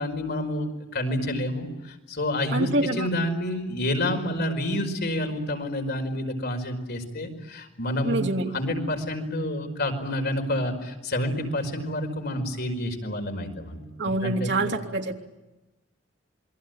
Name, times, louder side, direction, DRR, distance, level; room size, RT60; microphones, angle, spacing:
voice 1, 0.0-8.3 8.5-13.8 14.2-14.7, left 1 dB, 55° left, 4 dB, 5.1 m, -29 dB
voice 2, 2.5-3.1 8.0-8.5 14.0-15.2, right 2 dB, 65° right, 3 dB, 3.1 m, -26 dB
27.5 x 22.5 x 9.3 m, 1.1 s
head